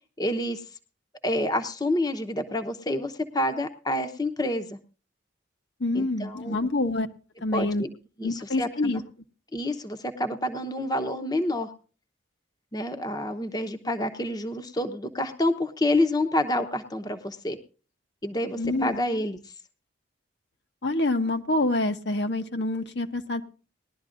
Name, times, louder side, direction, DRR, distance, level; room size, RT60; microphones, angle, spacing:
voice 1, 0.2-0.6 1.2-4.8 5.9-6.7 7.5-7.9 8.2-8.7 9.5-11.7 12.7-17.6 18.2-19.4, left 1 dB, 20° left, 7 dB, 0.9 m, -28 dB
voice 2, 5.8-7.1 7.4-7.8 8.2-9.0 18.6-19.0 20.8-23.4, left 2 dB, 60° left, 6 dB, 1.0 m, -26 dB
20.0 x 12.0 x 2.5 m, 0.36 s
head